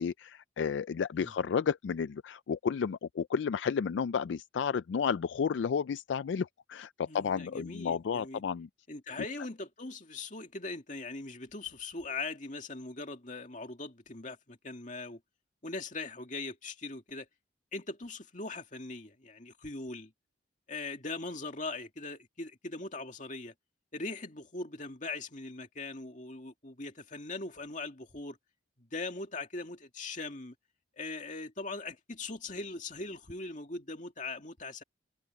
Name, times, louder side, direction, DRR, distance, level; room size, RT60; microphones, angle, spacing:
voice 1, 0.0-8.7, left 6 dB, 70° left, 0.3 m, -32 dB
voice 2, 7.0-8.4 8.9-15.2 15.6-17.3 17.7-20.1 20.7-23.5 23.9-28.4 28.8-30.5 31.0-34.8, left 3 dB, 40° left, 2.3 m, -40 dB
head